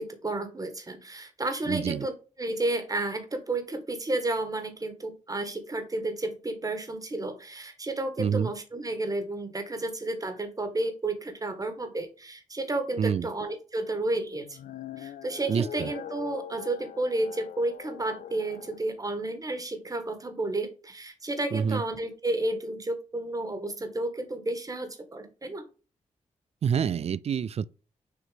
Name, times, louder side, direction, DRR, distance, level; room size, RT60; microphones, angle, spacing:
voice 1, 0.0-2.1 2.4-14.6 15.0-25.6, right 2 dB, 25° right, 1.6 m, -32 dB
voice 2, 1.7-2.1 8.2-8.5 13.0-13.3 15.5-15.9 21.5-21.8 26.6-27.7, right 7 dB, 50° right, 0.3 m, -27 dB
sound 1, 14.4-18.8, left 10 dB, 75° left, 0.5 m, -42 dB
6.5 x 3.0 x 5.0 m
cardioid pair, 70°, 14 cm